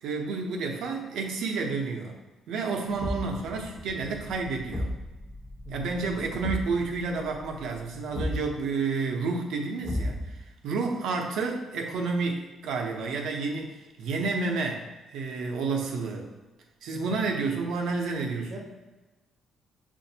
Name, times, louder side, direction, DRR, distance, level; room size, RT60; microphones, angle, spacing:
voice 1, 0.0-2.2 2.5-4.9 5.7-14.8 15.1-16.3 16.8-18.6, right 4 dB, 80° right, 1 dB, 0.6 m, -30 dB
sound 1, 2.8-8.6, left 1 dB, 20° right, 0.7 m, -46 dB
Thump thud, 3.0-3.4 4.7-5.0 6.4-6.8 8.1-8.5 9.8-10.4, left 1 dB, 15° left, 1.4 m, -31 dB
voice 2, 5.6-6.3 16.9-17.2 18.5-18.6, right 1 dB, 35° right, -2 dB, 1.1 m, -42 dB
6.6 x 2.5 x 2.8 m, 1.2 s
cardioid pair, 160°, 0 cm